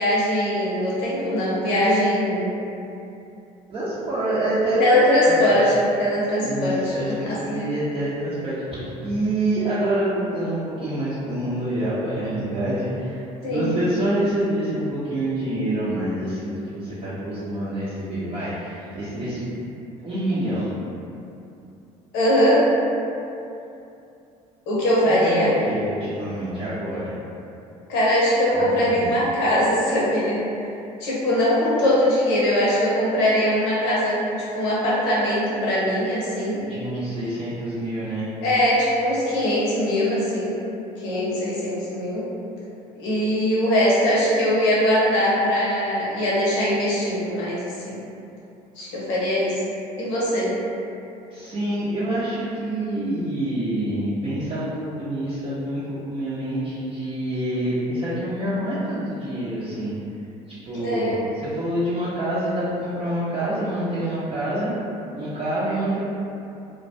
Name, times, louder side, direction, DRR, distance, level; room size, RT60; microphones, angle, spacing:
voice 1, 0.0-2.5 4.8-6.9 7.3-7.6 13.4-13.7 22.1-22.7 24.7-25.5 27.9-30.4 31.0-34.2 34.5-36.6 38.4-40.6 41.0-42.2 43.0-48.0 48.8-49.6 50.0-50.6 60.8-61.2, equal, 70° left, -7 dB, 0.7 m, -21 dB
voice 2, 3.7-5.6 6.4-13.2 13.5-19.7 20.0-20.7 25.2-27.1 28.5-29.1 36.6-38.3 51.3-59.9 60.6-64.7 65.1-66.0, right 1 dB, 30° right, -12 dB, 0.6 m, -26 dB
2.2 x 2.1 x 2.6 m, 2.7 s
hypercardioid pair, 65°, 19 cm